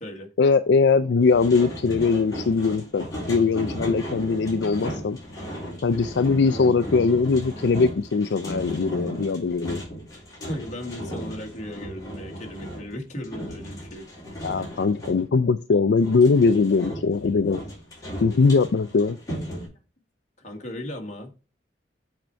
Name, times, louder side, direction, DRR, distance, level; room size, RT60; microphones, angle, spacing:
voice 1, 0.4-5.2 5.8-9.8 14.4-17.6 18.2-19.2, left 4 dB, 70° left, 0.4 m, -21 dB
sound 1, 1.2-15.3 16.0-19.7, equal, 20° left, 3.7 m, -36 dB
voice 2, 10.4-14.0 20.4-21.3, left 1 dB, 40° left, 1.7 m, -36 dB
7.7 x 4.4 x 4.6 m
head